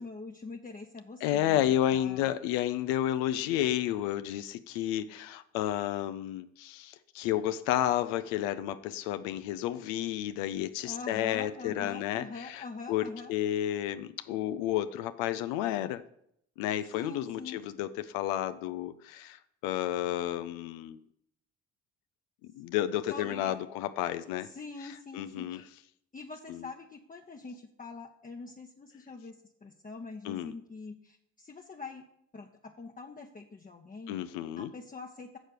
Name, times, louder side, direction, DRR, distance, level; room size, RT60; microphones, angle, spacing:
voice 1, 0.0-2.2 10.8-13.3 16.9-17.6 23.1-23.6 24.4-25.6 26.1-32.0 32.3-34.2 34.6-35.4, left 4 dB, 25° left, 2 dB, 0.9 m, -44 dB
voice 2, 1.2-16.0 16.6-21.0 22.4-24.5 24.8-25.6 26.5-26.6 30.2-30.5 34.1-34.7, left 12 dB, 80° left, 11 dB, 0.5 m, -31 dB
6.5 x 6.2 x 6.5 m, 0.71 s
hypercardioid pair, 55°, 34 cm